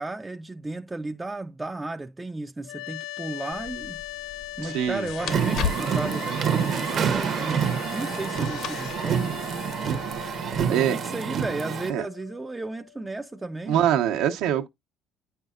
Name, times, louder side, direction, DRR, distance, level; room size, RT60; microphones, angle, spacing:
voice 1, 0.0-9.3 10.7-13.9, right 2 dB, 10° right, 0.4 m, -34 dB
sound 1, 2.6-13.7, left 16 dB, 85° left, 0.4 m, -40 dB
sound 2, 3.5-10.7, left 7 dB, 65° left, 1.0 m, -38 dB
voice 2, 4.6-5.1 10.7-11.0 11.9-12.1 13.7-14.7, right 10 dB, 85° right, 1.0 m, -24 dB
sound 3, 5.2-11.9, right 7 dB, 45° right, 0.8 m, -27 dB
9.4 x 5.4 x 2.4 m
cardioid pair, 135°, 0 cm